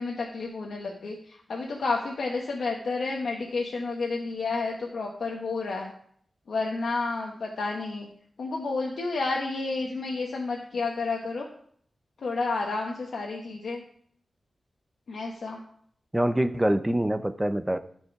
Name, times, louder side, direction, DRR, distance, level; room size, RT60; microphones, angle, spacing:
voice 1, 0.0-5.9 6.5-8.1 8.4-11.5 12.2-13.8 15.1-15.6, left 3 dB, 85° left, -1 dB, 1.0 m, -30 dB
voice 2, 16.1-17.8, right 1 dB, 10° right, 11 dB, 0.5 m, -25 dB
13.0 x 4.6 x 4.7 m, 0.62 s
wide cardioid pair, 120°, 0 cm